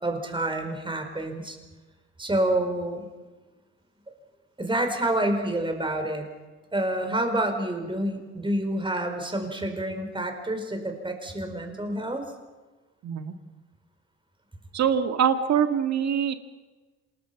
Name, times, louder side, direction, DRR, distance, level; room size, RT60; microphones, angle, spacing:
voice 1, 0.0-1.6 2.2-3.1 4.6-6.2 6.7-12.2, right 1 dB, 15° right, 5 dB, 4.7 m, -28 dB
voice 2, 13.0-13.3 14.7-16.3, right 8 dB, 60° right, 8 dB, 2.0 m, -24 dB
27.5 x 20.0 x 5.9 m, 1.3 s
cardioid pair, 90°, 30 cm